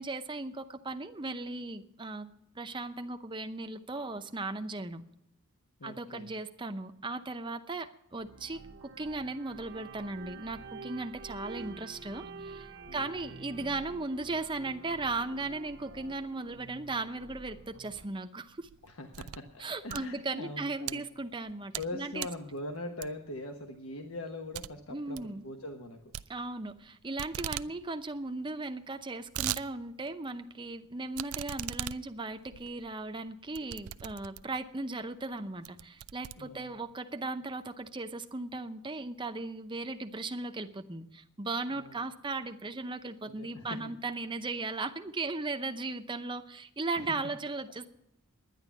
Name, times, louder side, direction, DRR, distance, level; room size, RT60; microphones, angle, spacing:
voice 1, 0.0-2.3 2.6-5.0 5.8-18.7 19.6-22.3 24.9-25.4 26.3-47.9, right 3 dB, 20° right, 7 dB, 0.7 m, -37 dB
voice 2, 5.8-6.3 12.9-13.0 18.8-21.0 21.8-26.0 27.3-27.5 36.4-36.7 41.7-42.0 43.3-43.7 47.0-47.1, left 2 dB, 75° left, 4 dB, 1.2 m, -42 dB
sound 1, 8.2-18.1, right 3 dB, 55° right, 0.9 m, -48 dB
sound 2, 18.5-19.5 19.8-20.9 21.4-21.9 22.2-22.5 23.0-23.4 23.8-23.9 24.2-24.3 24.5-24.7 25.0-25.3 26.1-26.9 27.2-27.7 28.0-28.1 28.3-28.4 28.9-29.6 30.1-30.2 31.1-34.6 35.2-35.3 35.6-36.9, right 13 dB, 80° right, 0.4 m, -39 dB
11.0 x 10.0 x 8.3 m, 0.81 s
head